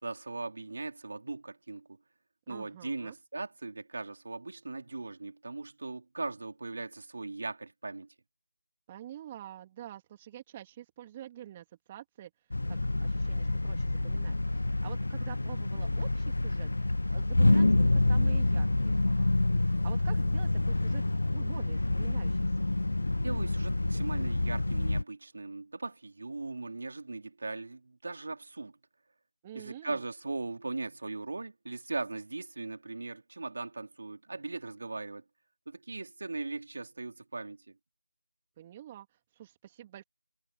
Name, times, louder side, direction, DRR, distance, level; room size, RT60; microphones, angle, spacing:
voice 1, 0.0-2.0 2.5-8.1 23.2-28.7 29.5-35.2 35.7-37.8, right 3 dB, 50° right, 3.9 m, -39 dB
voice 2, 2.5-3.2 8.9-12.3 12.7-16.7 17.1-19.3 19.6-21.0 21.3-22.5 29.4-30.0 38.6-40.0, right 12 dB, 15° right, 2.5 m, -47 dB
sound 1, 12.5-25.0, left 2 dB, 65° left, 0.8 m, -27 dB
figure-of-eight pair, 170°, 0 cm